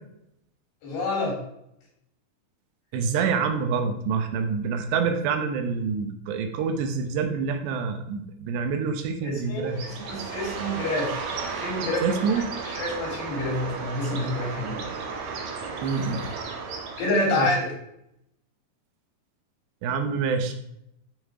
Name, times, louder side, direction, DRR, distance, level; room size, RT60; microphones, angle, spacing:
voice 1, 0.8-1.4 9.2-11.1 11.6-14.8 17.0-17.7, left 2 dB, 85° left, 0 dB, 5.5 m, -28 dB
voice 2, 2.9-9.8 12.0-12.5 15.8-16.3 17.4-17.5 19.8-20.5, right 5 dB, 85° right, 6 dB, 3.2 m, -26 dB
Bird, 9.7-17.4, right 5 dB, 60° right, 3.0 m, -34 dB
13.0 x 5.6 x 4.9 m, 0.78 s
omnidirectional pair, 4.8 m